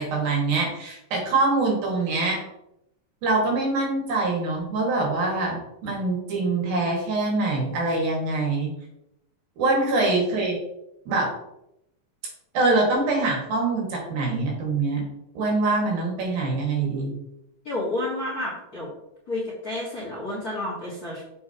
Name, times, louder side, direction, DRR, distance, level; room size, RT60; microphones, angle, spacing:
voice 1, 0.0-2.4 3.2-8.7 9.6-10.6 11.1-11.3 12.5-15.0 15.4-17.1, right 3 dB, 80° right, -1 dB, 3.7 m, -24 dB
voice 2, 9.6-10.1 17.6-18.9 19.3-21.2, left 2 dB, 40° left, -6 dB, 1.4 m, -30 dB
6.7 x 6.4 x 2.9 m, 0.83 s
omnidirectional pair, 4.1 m